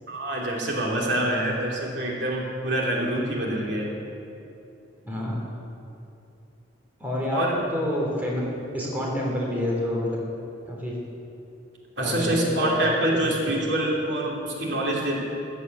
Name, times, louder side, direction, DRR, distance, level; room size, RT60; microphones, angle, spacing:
voice 1, 0.1-3.9 7.3-7.5 12.0-15.2, right 1 dB, 60° right, -3 dB, 2.9 m, -26 dB
voice 2, 5.0-5.4 7.0-8.4 8.7-10.2 10.7-10.9 12.0-12.7, left 1 dB, 10° right, -4 dB, 3.3 m, -28 dB
14.5 x 9.0 x 8.2 m, 2.7 s
head